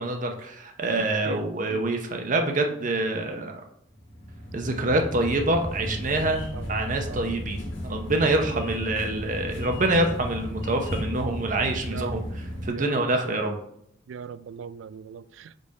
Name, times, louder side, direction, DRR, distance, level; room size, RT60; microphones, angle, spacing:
voice 1, 0.0-3.6 4.5-7.6 7.8-12.2 12.6-13.6, right 2 dB, 45° right, 0.7 m, -26 dB
sound 1, 3.9-12.7, equal, 85° left, 1.7 m, -34 dB
voice 2, 11.6-12.3 12.7-13.6 14.1-15.6, right 7 dB, 85° right, 0.3 m, -40 dB
5.3 x 4.2 x 4.7 m
head